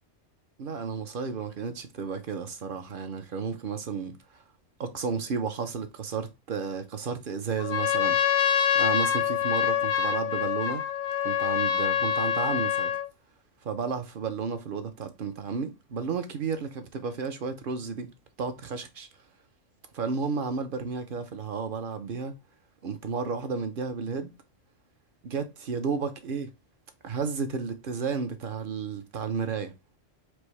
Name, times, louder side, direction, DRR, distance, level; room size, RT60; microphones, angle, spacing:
voice 1, 0.6-4.4 4.8-8.2 8.7-10.8 11.2-12.9 13.6-18.1 18.4-19.1 19.9-22.3 22.8-24.3 25.2-26.5 27.0-29.7, right 5 dB, 55° right, 0.7 m, -32 dB
Trumpet, 7.6-13.1, left 9 dB, 60° left, 0.6 m, -26 dB
4.7 x 2.6 x 3.1 m
omnidirectional pair, 1.3 m